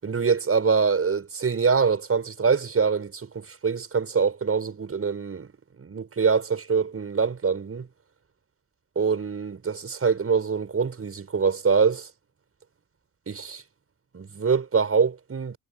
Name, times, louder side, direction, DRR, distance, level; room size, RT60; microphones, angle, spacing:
voice 1, 0.0-5.5 5.8-7.9 9.0-12.1 13.3-13.6 14.1-15.6, right 5 dB, 35° right, 7.1 m, -24 dB
figure-of-eight pair, 45°, 40 cm